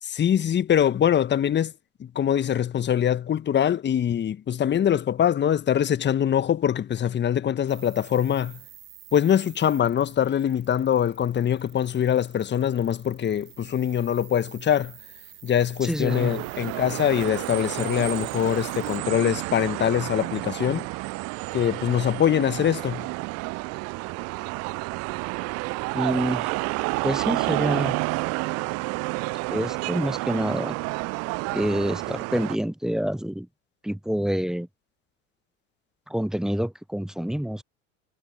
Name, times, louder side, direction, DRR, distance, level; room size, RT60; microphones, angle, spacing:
voice 1, 0.0-1.7 2.0-8.6 9.1-15.0 15.4-20.9 21.5-23.1, left 9 dB, 25° left, 1.6 m, -23 dB
sound 1, 7.7-19.0, right 13 dB, 70° right, 5.9 m, -50 dB
voice 2, 15.8-16.3 25.9-26.5 27.0-28.0 29.5-30.8 31.5-33.5 33.8-34.7 36.1-37.6, equal, ahead, 0.8 m, -27 dB
sound 2, 16.1-32.6, right 26 dB, 40° right, 0.6 m, -30 dB
figure-of-eight pair, 75°, 39 cm